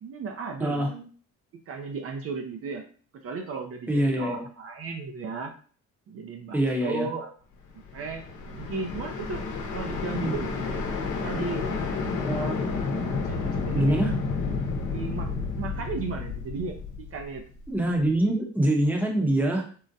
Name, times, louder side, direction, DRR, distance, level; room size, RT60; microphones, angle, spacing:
voice 1, 0.0-1.1 1.7-2.8 3.2-5.5 6.1-7.3 7.7-9.4 9.7-10.7 11.2-11.7 13.1-14.1 14.9-15.3 15.6-16.8 17.1-17.4, right 4 dB, 50° right, 4 dB, 0.5 m, -35 dB
voice 2, 3.9-4.4 6.5-7.1 10.0-10.3 12.2-12.6 13.7-14.1 17.7-19.6, right 1 dB, 5° right, 1 dB, 0.7 m, -25 dB
sound 1, 7.8-17.8, left 4 dB, 75° left, 0.8 m, -31 dB
3.8 x 2.1 x 2.6 m, 0.41 s
cardioid pair, 90°, 30 cm